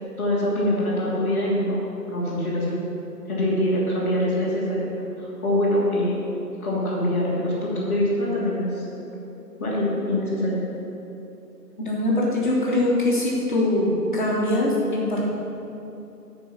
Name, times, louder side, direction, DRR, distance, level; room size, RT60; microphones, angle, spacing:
voice 1, 0.2-1.8 2.1-2.7 3.3-4.9 5.2-6.2 6.6-8.8 9.6-10.6, left 1 dB, 10° left, -14 dB, 1.2 m, -24 dB
voice 2, 11.8-15.3, left 1 dB, 30° left, -5 dB, 1.3 m, -22 dB
11.0 x 4.6 x 5.9 m, 2.8 s
figure-of-eight pair, 150°, 50 cm